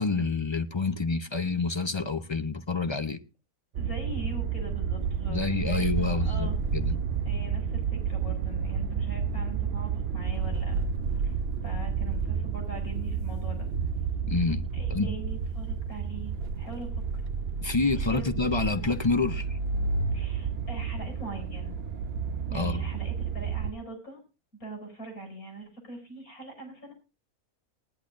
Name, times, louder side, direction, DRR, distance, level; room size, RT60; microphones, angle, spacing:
voice 1, 0.0-3.2 5.3-7.0 14.3-15.1 17.6-19.6 22.5-22.9, left 4 dB, 35° left, 0.4 m, -28 dB
voice 2, 3.7-6.5 7.2-10.9 11.2-11.4 11.6-13.7 14.7-17.0 17.8-18.3 20.1-21.7 22.5-24.2 24.6-26.9, right 2 dB, 75° left, 6.6 m, -42 dB
sound 1, 3.8-23.7, right 6 dB, 55° right, 0.8 m, -30 dB
20.5 x 10.5 x 2.6 m
omnidirectional pair, 1.5 m